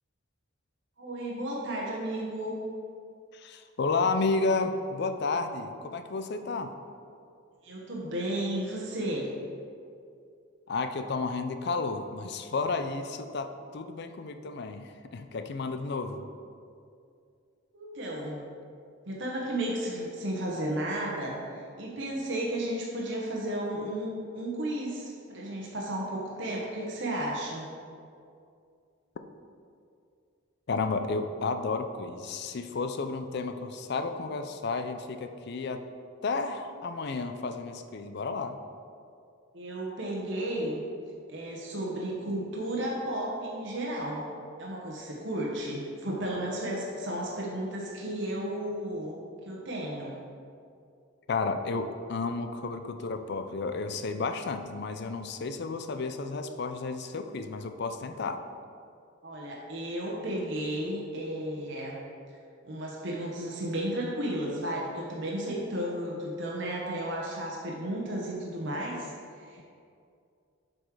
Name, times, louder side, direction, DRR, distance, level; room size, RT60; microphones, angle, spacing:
voice 1, 1.0-2.6 7.6-9.3 17.7-18.4 19.1-27.7 39.5-40.8 41.3-44.2 44.6-49.2 49.4-50.1 59.2-62.0 62.6-69.7, right 1 dB, 60° right, -3 dB, 1.1 m, -33 dB
voice 2, 3.3-6.7 10.7-16.3 30.7-35.8 36.2-38.6 51.3-58.4, left 4 dB, 55° left, 8 dB, 0.5 m, -32 dB
7.4 x 5.2 x 4.7 m, 2.4 s
head